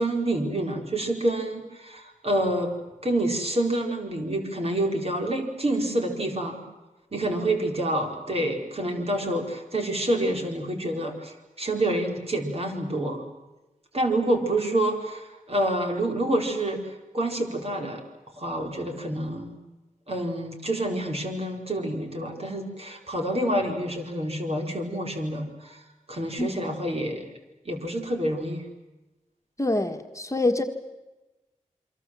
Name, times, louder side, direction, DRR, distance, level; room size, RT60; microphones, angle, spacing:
voice 1, 0.0-2.7 3.0-6.6 7.1-13.2 13.9-16.8 17.1-18.0 18.4-19.5 20.1-25.8 26.1-27.2 27.7-28.6, right 1 dB, 45° right, 2 dB, 4.3 m, -27 dB
voice 2, 29.6-30.6, left 2 dB, 20° left, 4 dB, 1.7 m, -25 dB
28.5 x 23.5 x 7.7 m, 1.1 s
cardioid pair, 60°, 14 cm